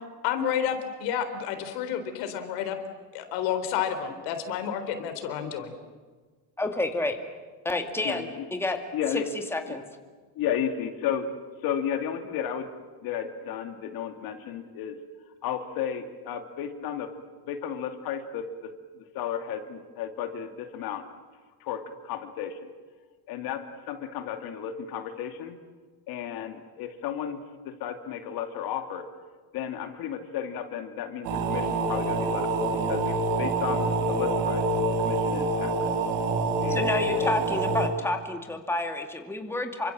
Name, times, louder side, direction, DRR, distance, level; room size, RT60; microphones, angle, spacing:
voice 1, 0.2-2.8 3.1-5.7, left 9 dB, 85° left, 8 dB, 4.0 m, -30 dB
voice 2, 6.6-7.2 7.6-8.8 9.5-9.8 36.7-39.9, left 2 dB, 5° left, 4 dB, 2.3 m, -29 dB
voice 3, 8.0-8.5 8.9-9.3 9.7-9.8 10.4-11.3 11.6-12.7 13.0-15.0 15.4-17.1 17.4-18.4 19.0-21.0 21.6-22.6 23.3-25.6 26.1-27.4 27.6-29.0 29.5-32.5 32.8-34.6 35.0-35.7 36.6-36.9 37.2-37.4, left 9 dB, 65° left, 6 dB, 2.6 m, -33 dB
sound 1, 31.2-37.9, right 2 dB, 90° right, 4.6 m, -26 dB
28.0 x 25.0 x 7.6 m, 1.4 s
cardioid pair, 140°, 39 cm